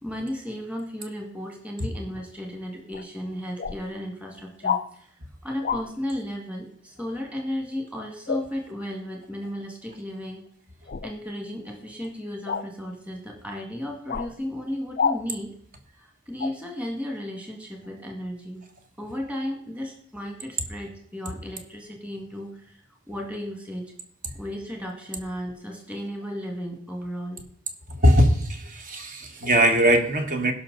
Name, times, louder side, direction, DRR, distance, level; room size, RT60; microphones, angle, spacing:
voice 1, 0.0-10.4 10.8-15.6 16.0-18.7 19.0-23.9 24.3-27.5, equal, 5° right, 1 dB, 1.7 m, -34 dB
sound 1, 2.9-3.0 3.6-3.8 4.6-4.9 5.6-5.8 8.3-8.5 10.9-11.1 12.5-12.7 14.1-14.3 15.0-15.2 16.4-16.5, left 6 dB, 45° left, 0.4 m, -27 dB
voice 2, 27.9-30.5, equal, 40° right, 5 dB, 1.4 m, -20 dB
17.0 x 5.8 x 3.9 m, 0.65 s
head